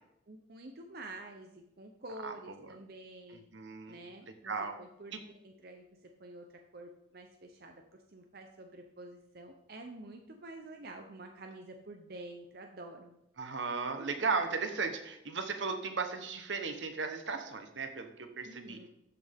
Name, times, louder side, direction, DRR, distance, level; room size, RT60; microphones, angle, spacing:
voice 1, 0.3-3.4 3.9-6.5 6.7-13.1 18.4-18.9, right 2 dB, 55° right, 3 dB, 0.8 m, -49 dB
voice 2, 3.5-4.0 4.4-4.7 5.1-5.2 13.4-18.8, right 4 dB, 75° right, 6 dB, 1.1 m, -35 dB
13.5 x 6.0 x 3.6 m, 0.81 s
head